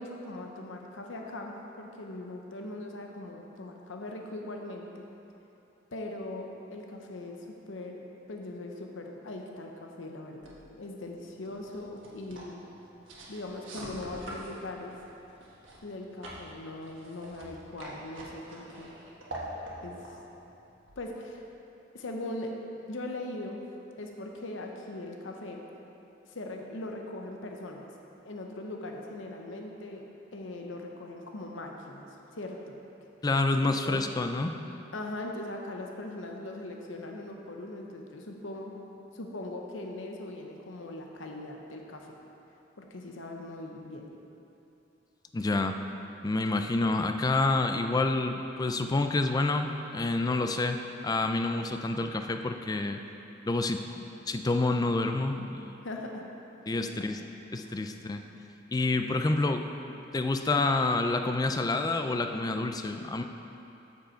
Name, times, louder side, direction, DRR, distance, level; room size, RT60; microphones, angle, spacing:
voice 1, 0.0-5.0 5.9-8.0 8.3-12.6 13.3-14.9 15.8-19.0 19.8-20.2 21.0-21.4 21.9-22.5 22.9-23.6 24.0-25.6 26.3-27.9 28.2-30.0 30.3-32.0 32.3-32.8 33.6-34.0 34.9-38.9 39.1-42.1 42.8-44.1 55.8-56.3 56.7-57.1, left 2 dB, 85° left, 2 dB, 0.8 m, -40 dB
sound 1, 10.4-21.5, right 1 dB, 85° right, 1.4 m, -46 dB
voice 2, 33.2-34.5 45.3-45.8 46.2-53.0 53.5-53.8 54.3-55.8 56.7-57.2 57.5-58.2 58.7-63.2, left 2 dB, 20° left, 6 dB, 0.3 m, -28 dB
7.8 x 6.9 x 4.4 m, 2.9 s
head